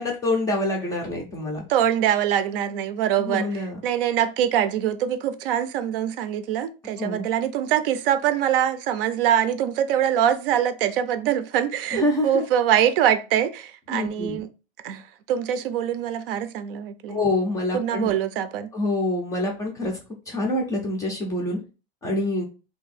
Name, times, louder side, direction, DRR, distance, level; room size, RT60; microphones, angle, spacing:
voice 1, 0.0-1.6 3.2-3.8 7.0-7.2 11.9-12.5 13.9-14.4 17.1-18.1 18.7-20.0 20.3-21.6 22.0-22.4, left 2 dB, 10° left, 0.4 m, -26 dB
voice 2, 1.7-3.5 3.8-14.5 14.8-15.0 15.3-17.2 17.7-18.7, right 10 dB, 65° right, 0.5 m, -23 dB
2.7 x 2.7 x 4.0 m
supercardioid pair, 160°, 30 cm